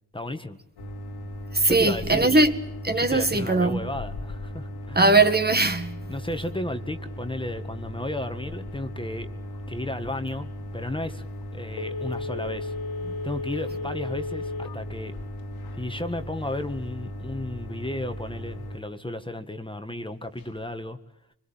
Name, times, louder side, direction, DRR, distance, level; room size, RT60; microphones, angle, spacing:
voice 1, 0.1-0.6 1.6-2.4 3.0-5.0 6.1-9.3 9.7-10.5 10.7-11.3 11.5-12.7 13.2-15.2 15.7-21.0, left 1 dB, 15° left, 1.8 m, -33 dB
sound 1, 0.8-18.8, equal, 85° left, 2.7 m, -37 dB
voice 2, 1.5-2.5 2.8-3.9 5.0-6.0, right 2 dB, 25° right, 1.8 m, -20 dB
Telephone, 11.7-14.8 15.2-15.3, left 3 dB, 65° left, 1.9 m, -34 dB
25.5 x 22.0 x 9.1 m
cardioid pair, 65°, 37 cm